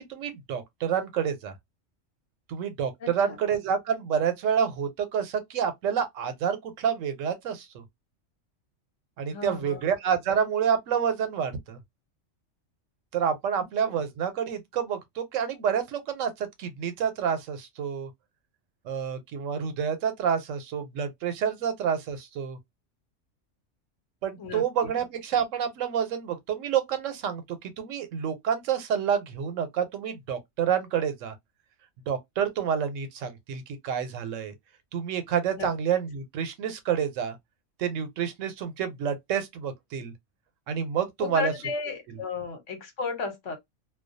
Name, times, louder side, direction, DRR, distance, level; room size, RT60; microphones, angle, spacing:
voice 1, 0.0-1.5 2.5-7.8 9.2-11.8 13.1-18.1 18.8-22.6 24.2-31.3 32.1-34.5 34.9-37.4 37.8-40.1 40.7-41.5 42.1-42.2, right 8 dB, 90° right, 1.0 m, -28 dB
voice 2, 3.0-3.4 9.3-9.8 13.9-14.0 24.4-24.6 35.6-35.7 41.2-43.6, left 5 dB, 75° left, 1.2 m, -34 dB
2.3 x 2.2 x 2.5 m
omnidirectional pair, 1.3 m